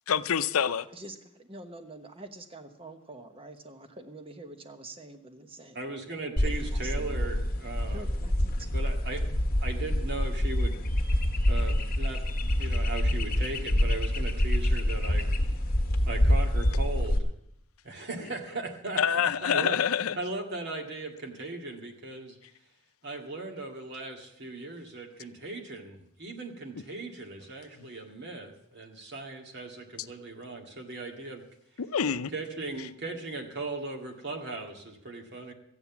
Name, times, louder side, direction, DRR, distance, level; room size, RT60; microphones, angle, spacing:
voice 1, 0.1-0.9 18.2-18.3 19.0-20.2 27.8-27.9 31.8-32.3 32.8-32.9, left 7 dB, 80° left, 0.5 m, -27 dB
voice 2, 0.9-5.8 6.4-7.2 7.9-8.7, right 2 dB, 25° right, 1.1 m, -46 dB
voice 3, 5.7-8.1 8.7-9.2 9.6-10.8 11.5-15.3 16.1-17.2 17.8-19.8 20.2-22.4 23.0-31.4 32.3-35.5, right 2 dB, 50° right, 2.0 m, -38 dB
sound 1, 6.4-17.2, left 1 dB, 45° left, 1.4 m, -26 dB
14.0 x 9.1 x 7.1 m
head